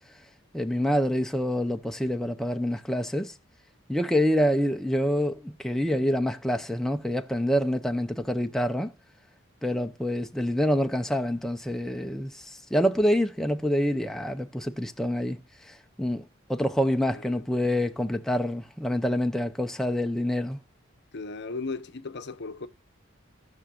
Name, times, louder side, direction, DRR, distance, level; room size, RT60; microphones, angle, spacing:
voice 1, 0.5-3.3 3.9-8.9 9.6-15.4 15.7-16.2 16.5-20.6, equal, ahead, 0.5 m, -26 dB
voice 2, 21.1-22.7, left 3 dB, 55° left, 0.7 m, -36 dB
18.0 x 6.2 x 2.3 m
head